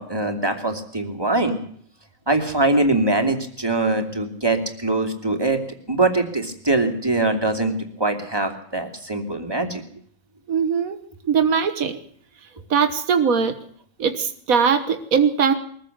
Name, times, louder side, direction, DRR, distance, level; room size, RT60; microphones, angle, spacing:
voice 1, 0.0-1.6 2.3-5.6 5.9-9.8, right 2 dB, 15° right, 4 dB, 2.8 m, -22 dB
voice 2, 10.5-11.0 11.3-12.0 12.7-13.6 14.0-15.5, right 6 dB, 85° right, 7 dB, 1.8 m, -20 dB
22.5 x 14.5 x 8.0 m, 0.64 s
omnidirectional pair, 1.4 m